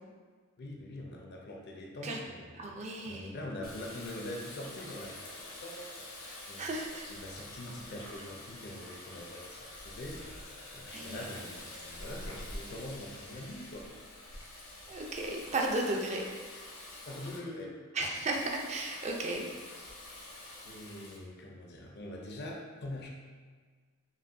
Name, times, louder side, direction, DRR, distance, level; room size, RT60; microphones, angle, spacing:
voice 1, 0.6-6.2 6.5-6.7 7.1-10.2 10.7-13.9 17.1-17.8 20.7-23.1, left 1 dB, 50° left, -1 dB, 0.6 m, -44 dB
voice 2, 2.6-3.3 6.6-7.1 10.9-11.3 14.9-16.2 17.9-19.5, right 2 dB, 35° right, 0 dB, 0.5 m, -34 dB
Water tap faucet, 3.6-17.4 18.3-21.2, left 1 dB, 75° left, 1.1 m, -47 dB
5.6 x 2.6 x 2.6 m, 1.5 s
head